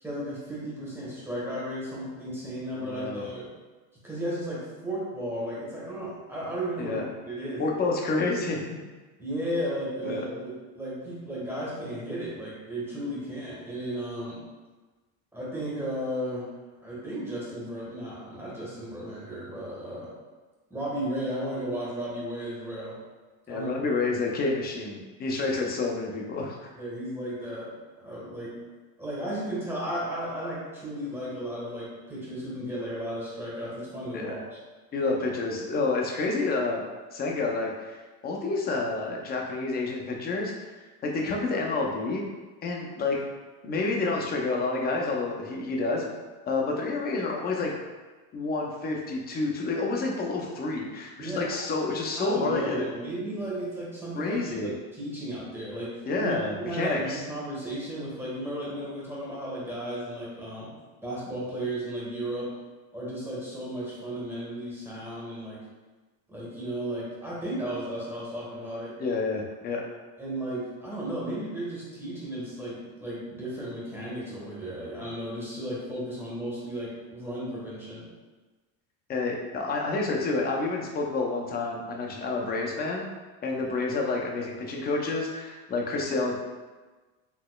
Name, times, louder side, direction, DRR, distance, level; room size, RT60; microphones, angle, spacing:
voice 1, 0.0-3.5 4.0-7.6 9.2-14.4 15.3-16.5 16.8-20.1 20.7-22.9 23.5-23.8 26.7-28.6 29.0-34.6 51.2-51.6 52.2-60.7 61.0-62.5 62.9-65.6 66.3-69.0 70.2-78.0, right 1 dB, 5° right, -8 dB, 1.2 m, -34 dB
voice 2, 2.7-3.3 6.8-7.1 7.6-8.6 10.1-10.2 23.5-26.7 34.1-34.3 34.9-36.8 37.1-40.5 41.0-42.2 42.6-43.2 43.6-46.0 46.5-47.7 48.3-52.9 54.1-54.7 56.1-57.2 69.0-69.8 79.1-83.0 83.4-86.3, left 3 dB, 20° left, -1 dB, 0.5 m, -29 dB
4.2 x 2.9 x 2.2 m, 1.3 s
supercardioid pair, 115°, 47 cm